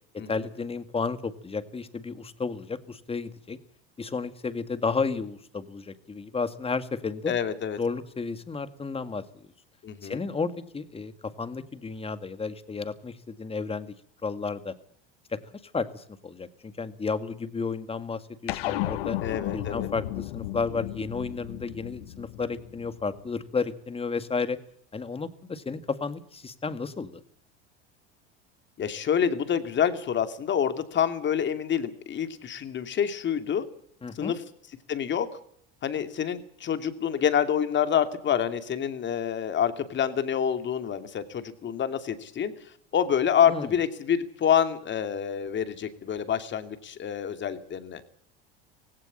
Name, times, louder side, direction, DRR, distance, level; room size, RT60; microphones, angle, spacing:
voice 1, 0.3-3.6 4.0-7.3 7.8-9.5 10.0-11.1 11.4-13.9 14.2-14.7 15.3-19.2 19.5-24.6 24.9-27.2 34.0-34.3 43.5-43.7, left 4 dB, 20° left, 11 dB, 2.0 m, -32 dB
voice 2, 7.3-7.8 9.8-10.2 19.2-19.9 28.8-33.6 34.1-34.4 34.9-35.3 35.8-42.5 42.9-48.2, left 8 dB, 40° left, 9 dB, 2.7 m, -27 dB
sound 1, 18.5-23.2, left 16 dB, 80° left, 1.3 m, -34 dB
17.5 x 17.0 x 8.8 m, 0.64 s
supercardioid pair, 100°, 30 cm